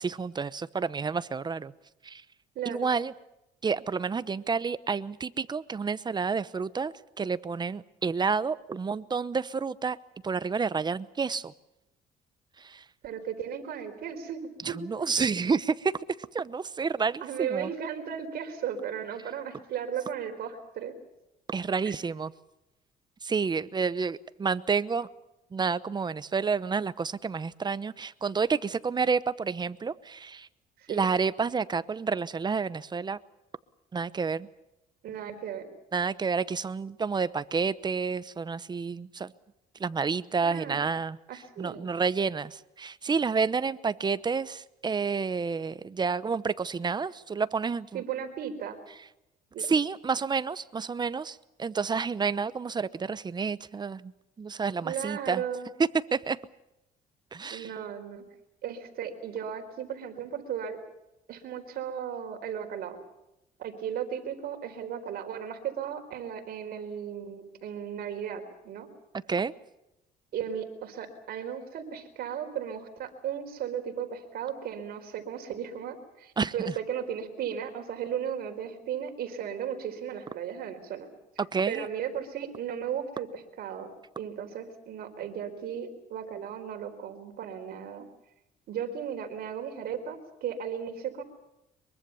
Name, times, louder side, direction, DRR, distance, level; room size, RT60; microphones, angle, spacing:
voice 1, 0.0-1.7 2.0-2.2 2.6-3.1 3.6-10.0 10.2-11.5 12.6-12.8 14.6-15.9 16.3-17.7 21.5-22.3 23.2-25.1 25.5-30.5 30.9-33.2 33.9-34.5 35.9-39.3 39.8-41.2 41.6-48.0 49.6-54.1 54.4-55.4 56.1-56.4 57.3-57.7 69.3-69.5 76.4-76.7 81.5-81.9, right 5 dB, 25° right, 16 dB, 0.9 m, -29 dB
voice 2, 2.5-2.9 13.0-14.4 14.7-14.8 17.2-20.9 21.8-21.9 30.8-31.1 35.0-35.7 40.4-40.9 41.3-41.9 47.9-48.8 49.5-49.7 54.8-55.7 57.5-58.2 58.6-60.8 61.3-63.0 63.6-68.9 70.3-81.1 81.7-83.9 84.2-88.1 88.7-91.2, right 8 dB, 65° right, 6 dB, 4.3 m, -35 dB
24.0 x 23.0 x 7.1 m, 0.90 s
cardioid pair, 110°, 17 cm